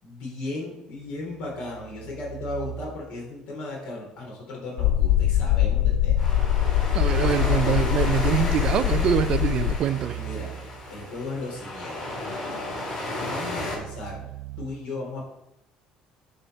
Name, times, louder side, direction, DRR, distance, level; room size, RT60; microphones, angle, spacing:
voice 1, 0.0-6.3 10.1-12.2 13.2-14.3 14.6-15.2, left 2 dB, 55° left, 3.5 m, -36 dB
sound 1, 1.0-3.3 5.4-8.0 8.6-11.1 13.2-14.7, right 15 dB, 90° right, 0.6 m, -42 dB
sound 2, 4.8-9.8, left 12 dB, 75° left, 0.3 m, -23 dB
sound 3, 6.2-13.8, left 1 dB, 30° left, 3.6 m, -33 dB
voice 2, 6.9-10.2, right 10 dB, 40° right, 0.3 m, -24 dB
9.8 x 4.3 x 5.5 m
cardioid pair, 165°, 2 cm